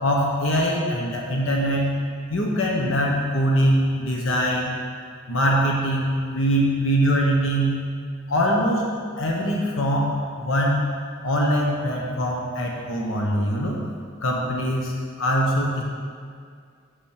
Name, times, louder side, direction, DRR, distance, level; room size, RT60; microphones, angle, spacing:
voice 1, 0.0-2.0 2.3-4.7 5.3-7.8 8.3-8.8 9.2-10.9 11.2-13.8 14.2-14.9 15.2-15.8, equal, 90° left, -1 dB, 1.2 m, -22 dB
7.4 x 5.9 x 6.6 m, 2.1 s
head